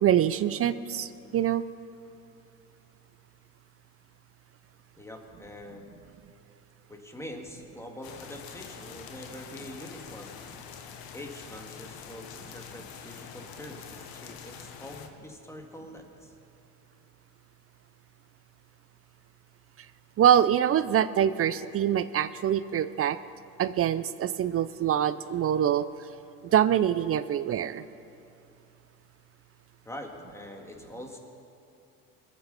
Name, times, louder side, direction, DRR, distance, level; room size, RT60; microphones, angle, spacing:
voice 1, 0.0-1.6 20.2-23.2 23.6-25.9 26.4-27.8, right 10 dB, 35° right, 15 dB, 0.5 m, -24 dB
voice 2, 5.0-6.0 6.9-10.3 11.1-16.3 29.8-31.2, left 1 dB, 5° left, 2 dB, 2.3 m, -44 dB
sound 1, 8.0-15.1, left 7 dB, 65° left, 1.5 m, -45 dB
21.0 x 8.4 x 5.7 m, 2.7 s
supercardioid pair, 80°, 39 cm